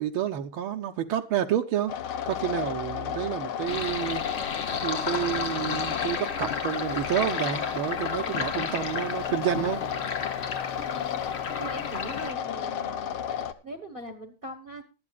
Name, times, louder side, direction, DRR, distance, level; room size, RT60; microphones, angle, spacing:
voice 1, 0.0-1.9 2.2-4.2 4.8-9.9, right 11 dB, 75° right, 1.7 m, -29 dB
sound 1, 1.9-13.5, left 9 dB, 80° left, 1.7 m, -33 dB
Sink (filling or washing), 3.7-12.3, left 5 dB, 45° left, 0.8 m, -33 dB
voice 2, 10.9-11.2 11.5-13.2 13.6-14.8, right 1 dB, 30° right, 1.1 m, -41 dB
19.5 x 12.0 x 2.4 m
omnidirectional pair, 2.3 m